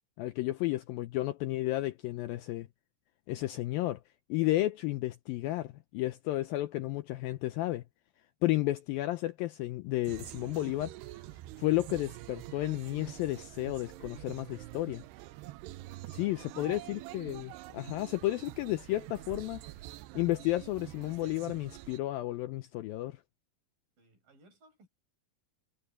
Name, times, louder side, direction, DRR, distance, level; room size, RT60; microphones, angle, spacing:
voice 1, 0.2-2.7 3.3-4.0 4.3-7.8 8.4-10.9 11.6-15.0 16.1-19.6 20.2-23.2, left 17 dB, 80° left, 2.2 m, -32 dB
sound 1, 10.0-22.0, right 17 dB, 85° right, 2.8 m, -46 dB
voice 2, 16.2-17.3 24.0-24.9, right 2 dB, 55° right, 7.3 m, -62 dB
omnidirectional pair, 4.7 m